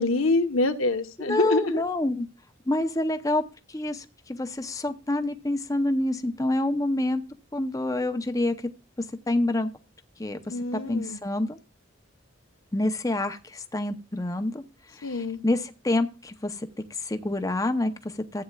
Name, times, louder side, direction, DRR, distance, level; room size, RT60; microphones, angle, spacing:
voice 1, 0.0-1.8 10.5-11.2 15.0-15.4, left 2 dB, 90° left, 1.1 m, -26 dB
voice 2, 1.2-2.3 2.7-3.4 3.7-7.2 7.5-8.7 9.0-9.7 10.2-11.6 12.7-14.6 14.9-18.4, left 1 dB, 15° left, 0.7 m, -27 dB
14.5 x 8.6 x 2.3 m
head